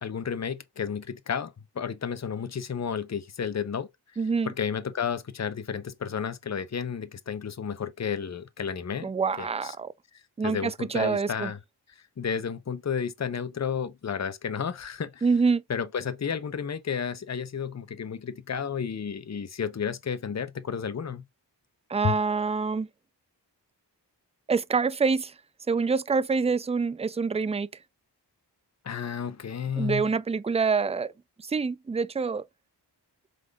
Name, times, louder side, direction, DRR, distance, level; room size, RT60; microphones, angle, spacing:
voice 1, 0.0-3.9 4.5-9.1 9.4-9.7 10.4-11.6 12.2-15.2 15.7-21.2 22.0-22.1 28.8-30.1, left 7 dB, 40° left, 0.7 m, -32 dB
voice 2, 4.2-4.5 9.0-9.9 10.4-11.5 15.2-15.6 21.9-22.9 24.5-25.3 25.7-27.7 29.8-31.1 31.4-32.4, right 5 dB, 15° right, 0.3 m, -26 dB
4.9 x 3.8 x 2.3 m
wide cardioid pair, 50°, 42 cm